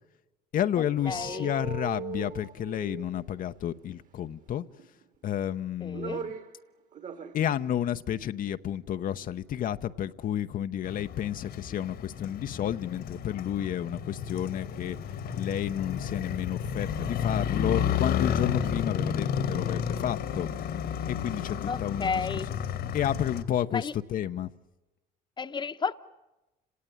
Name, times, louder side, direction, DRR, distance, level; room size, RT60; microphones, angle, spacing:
voice 1, 0.5-4.7 5.2-6.3 7.3-15.0 15.4-20.5 21.1-22.2 22.9-24.5, left 10 dB, 55° left, 0.8 m, -31 dB
sound 1, 1.0-3.6 4.8-5.4 5.7-6.6 6.9-7.4 7.8-7.9, right 6 dB, 50° right, 2.3 m, -39 dB
voice 2, 1.1-1.5 5.8-6.2 21.7-22.5 23.7-23.9 25.4-26.0, left 5 dB, 25° left, 1.0 m, -32 dB
Motorcycle, 10.8-23.4, left 8 dB, 70° left, 1.9 m, -32 dB
30.0 x 18.0 x 9.8 m
cardioid pair, 110°, 17 cm